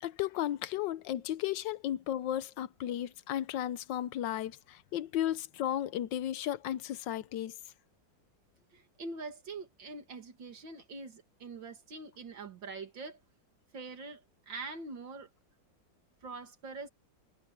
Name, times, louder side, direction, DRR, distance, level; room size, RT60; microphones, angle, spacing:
voice 1, 0.0-7.6, left 12 dB, 80° left, 1.4 m, -34 dB
voice 2, 8.7-13.2 13.7-15.3 16.2-16.9, right 3 dB, 85° right, 3.1 m, -44 dB
omnidirectional pair, 2.0 m